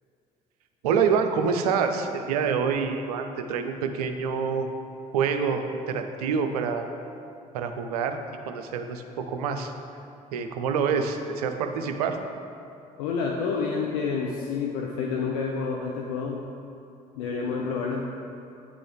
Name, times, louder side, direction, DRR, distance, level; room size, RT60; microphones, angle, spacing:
voice 1, 0.8-4.7 5.1-6.9 7.5-8.2 8.5-9.7 10.3-12.2, right 6 dB, 70° right, 6 dB, 0.5 m, -26 dB
voice 2, 13.0-16.4 17.2-18.0, left 5 dB, 65° left, 0 dB, 0.5 m, -29 dB
9.4 x 3.8 x 3.5 m, 2.7 s
figure-of-eight pair, 50°, 20 cm